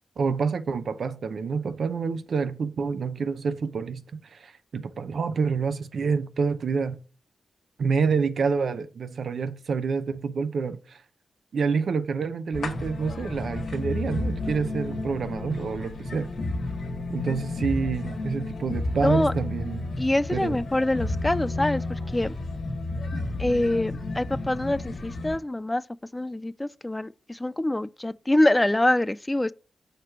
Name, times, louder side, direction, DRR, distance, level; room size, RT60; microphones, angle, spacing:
voice 1, 0.2-7.0 7.8-11.0 11.5-16.3 17.1-19.9 20.3-20.6, right 5 dB, 75° right, 0.6 m, -28 dB
sound 1, 12.5-25.4, left 2 dB, 75° left, 1.5 m, -32 dB
voice 2, 19.0-19.3 20.0-22.3 23.4-25.8 26.1-29.5, left 1 dB, 15° left, 0.3 m, -25 dB
6.7 x 3.2 x 5.8 m
cardioid pair, 60°, 0 cm